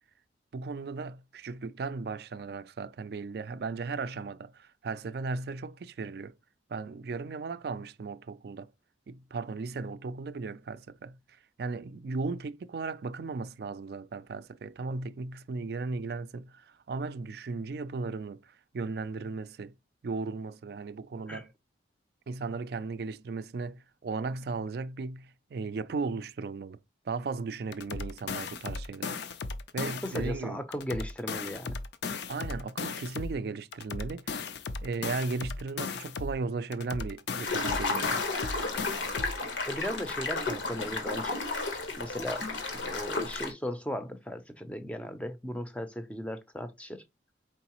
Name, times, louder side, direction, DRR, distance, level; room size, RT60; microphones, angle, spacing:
voice 1, 0.5-6.3 6.7-8.7 9.1-11.2 11.6-19.7 20.0-21.5 22.3-26.8 27.1-29.1 29.7-30.6 32.3-34.4 34.8-38.2, right 4 dB, 55° right, 0.3 m, -36 dB
sound 1, 27.7-30.4 30.7-33.4 33.7-36.4 36.7-39.4, left 4 dB, 65° left, 0.5 m, -36 dB
voice 2, 30.0-31.8 39.7-41.4 42.0-47.0, equal, 5° left, 0.5 m, -37 dB
sound 2, 37.4-43.5, left 3 dB, 85° left, 1.2 m, -32 dB
4.6 x 3.9 x 2.9 m
head